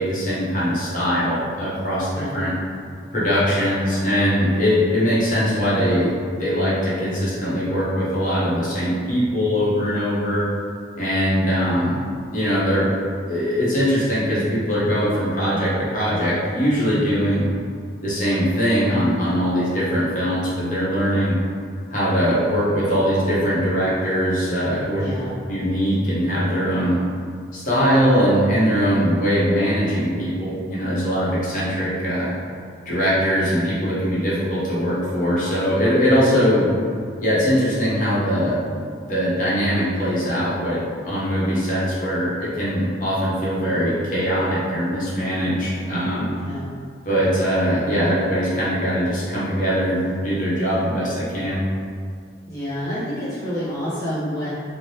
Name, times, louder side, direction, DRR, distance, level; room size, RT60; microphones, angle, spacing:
voice 1, 0.0-2.5 3.1-6.1 6.4-10.5 10.9-12.0 12.3-12.9 13.2-17.5 18.0-21.4 21.9-25.0 25.5-27.0 27.5-32.3 32.9-36.7 37.2-38.6 39.0-46.3 47.1-51.6, equal, 45° left, -9 dB, 0.8 m, -21 dB
voice 2, 2.1-2.4 25.0-25.3 46.3-46.7 52.5-54.5, equal, 20° left, -12 dB, 0.6 m, -28 dB
3.2 x 2.1 x 2.7 m, 2.2 s
head